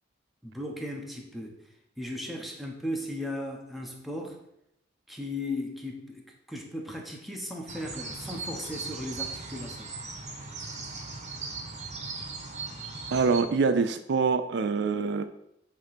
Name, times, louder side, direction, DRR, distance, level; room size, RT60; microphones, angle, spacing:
voice 1, 0.4-1.6 2.0-4.4 5.1-9.9, left 1 dB, ahead, 0 dB, 1.0 m, -36 dB
sound 1, 7.7-13.4, right 3 dB, 40° right, 1.1 m, -38 dB
voice 2, 13.1-15.2, right 5 dB, 65° right, 10 dB, 0.4 m, -25 dB
8.0 x 3.1 x 5.8 m, 0.80 s
head